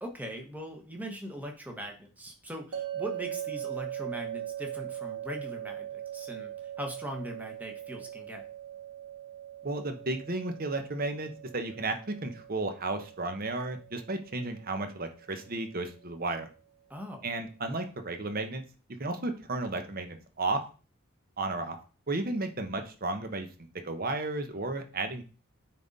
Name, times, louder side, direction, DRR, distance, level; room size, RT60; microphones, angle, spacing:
voice 1, 0.0-8.5 16.9-17.3, equal, 5° right, 2 dB, 1.0 m, -40 dB
sound 1, 2.7-15.8, right 11 dB, 80° right, 1.1 m, -41 dB
voice 2, 9.6-16.5 17.2-18.6 19.0-20.6 21.4-21.8 22.1-23.5 23.8-25.2, right 2 dB, 40° right, 7 dB, 0.9 m, -33 dB
9.1 x 3.7 x 4.1 m, 0.37 s
head